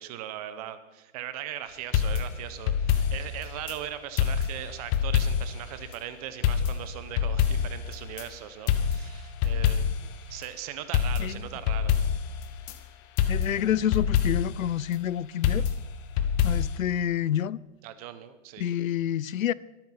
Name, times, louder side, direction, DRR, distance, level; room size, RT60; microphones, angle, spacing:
voice 1, 0.0-9.9 10.3-12.0 17.8-18.7, right 11 dB, 30° right, 1.0 m, -39 dB
sound 1, 1.9-3.8 4.2-5.7 5.9-6.0 6.4-8.3 8.7-10.2 10.4-10.5 10.9-12.8 13.2-14.6 15.4-16.8, left 8 dB, 15° left, 0.5 m, -26 dB
voice 2, 13.3-15.6 16.4-17.6 18.6-19.5, left 10 dB, 85° left, 0.7 m, -28 dB
22.5 x 8.9 x 5.9 m
hypercardioid pair, 155°, 39 cm